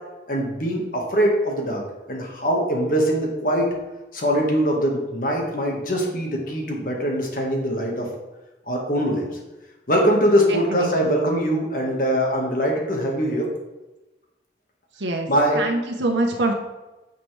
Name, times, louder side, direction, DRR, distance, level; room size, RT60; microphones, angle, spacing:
voice 1, 0.3-1.8 2.1-3.7 4.1-8.1 8.7-9.3 9.9-13.5 15.3-15.6, equal, 50° left, 0 dB, 1.7 m, -22 dB
voice 2, 10.5-11.1 14.9-15.3 15.5-16.5, right 2 dB, 85° right, 2 dB, 1.0 m, -25 dB
9.6 x 5.8 x 3.3 m, 1.1 s
head